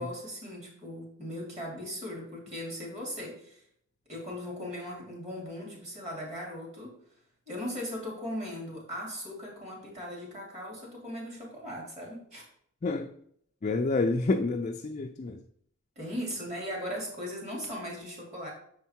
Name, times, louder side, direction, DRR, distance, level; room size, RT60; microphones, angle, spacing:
voice 1, 0.0-3.6 4.1-7.0 7.5-12.5 16.0-18.5, equal, 35° right, 2.6 m, -38 dB
voice 2, 13.6-15.4, left 3 dB, 35° left, 0.4 m, -28 dB
6.5 x 4.5 x 4.3 m
head